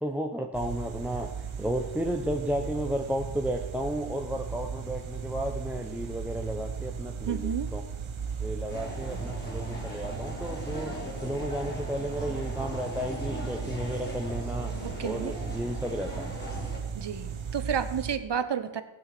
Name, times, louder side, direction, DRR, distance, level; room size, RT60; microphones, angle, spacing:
voice 1, 0.0-7.8 8.4-16.4, equal, 5° right, 2 dB, 1.0 m, -33 dB
sound 1, 0.5-18.2, right 7 dB, 85° right, 1.2 m, -37 dB
voice 2, 7.3-7.7 14.8-15.3 16.9-18.8, right 7 dB, 60° right, 11 dB, 1.2 m, -31 dB
sound 2, 8.7-16.8, left 1 dB, 20° left, 4.0 m, -39 dB
15.5 x 9.6 x 6.2 m, 1.0 s
wide cardioid pair, 120°, 47 cm